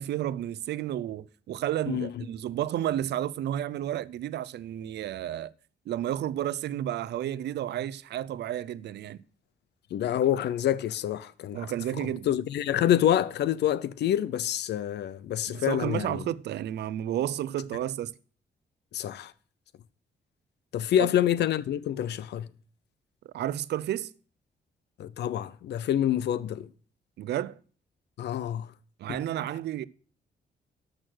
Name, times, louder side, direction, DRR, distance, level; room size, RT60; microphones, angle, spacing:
voice 1, 0.0-5.5 5.9-9.2 11.5-12.3 15.5-18.1 21.0-21.1 23.3-24.1 27.2-27.6 29.0-29.8, right 12 dB, 90° right, 0.5 m, -31 dB
voice 2, 1.9-2.2 9.9-11.7 12.3-16.2 18.9-19.3 20.7-22.5 25.0-26.7 28.2-28.7 29.1-29.2, left 11 dB, 85° left, 0.7 m, -27 dB
12.5 x 6.3 x 6.3 m
wide cardioid pair, 170°, 17 cm